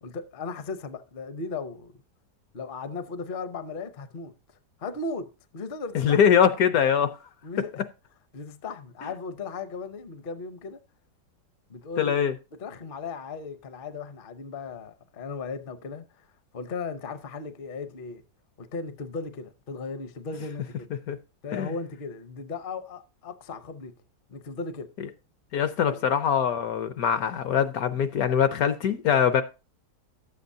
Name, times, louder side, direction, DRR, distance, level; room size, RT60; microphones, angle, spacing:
voice 1, 0.0-2.0 2.5-4.3 4.8-6.2 7.4-7.8 8.3-10.8 11.7-12.1 12.6-16.3 16.5-18.2 18.6-20.9 21.4-24.0 24.3-24.9 25.8-26.0, left 4 dB, 50° left, 0.6 m, -36 dB
voice 2, 6.0-7.1 12.0-12.3 21.1-21.2 21.5-21.7 25.5-29.4, left 8 dB, 65° left, 1.0 m, -22 dB
12.0 x 7.7 x 2.6 m
omnidirectional pair, 1.8 m